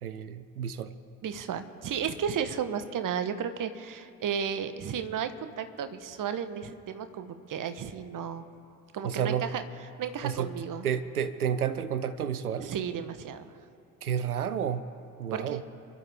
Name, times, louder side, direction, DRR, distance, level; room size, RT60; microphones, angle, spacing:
voice 1, 0.0-0.9 9.0-9.5 10.2-10.5 10.8-12.7 14.0-14.8 15.2-15.6, right 8 dB, 85° right, 13 dB, 0.7 m, -30 dB
voice 2, 1.2-8.4 8.9-9.6 10.0-10.9 12.6-13.4 15.3-15.6, right 7 dB, 45° right, 10 dB, 1.3 m, -33 dB
29.0 x 12.0 x 3.6 m, 2.7 s
figure-of-eight pair, 45°, 43 cm